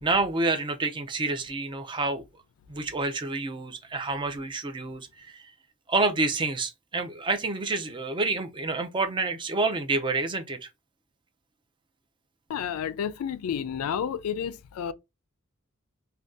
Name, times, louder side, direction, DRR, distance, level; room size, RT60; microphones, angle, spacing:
voice 1, 0.0-2.2 2.7-5.5 5.9-10.7, right 3 dB, 20° right, 0.4 m, -28 dB
voice 2, 12.5-14.9, left 8 dB, 80° left, 0.3 m, -31 dB
2.6 x 2.2 x 3.5 m
head